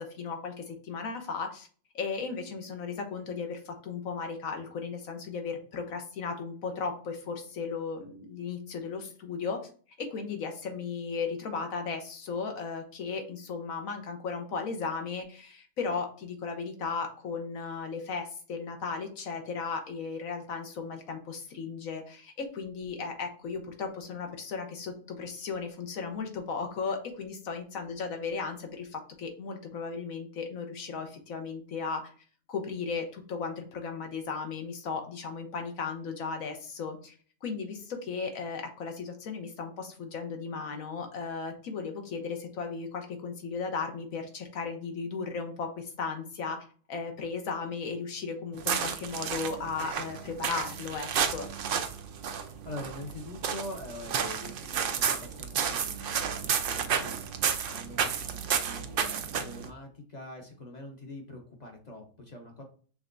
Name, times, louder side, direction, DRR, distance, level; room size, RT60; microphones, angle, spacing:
voice 1, 0.0-1.7 1.9-9.6 10.0-32.1 32.5-37.1 37.4-51.5, left 5 dB, 75° left, 5 dB, 1.3 m, -36 dB
sound 1, 48.5-59.7, right 7 dB, 65° right, 0.5 m, -32 dB
voice 2, 52.3-57.2 57.7-62.6, left 1 dB, 35° left, 2 dB, 0.9 m, -44 dB
6.0 x 3.3 x 2.6 m, 0.42 s
omnidirectional pair, 1.4 m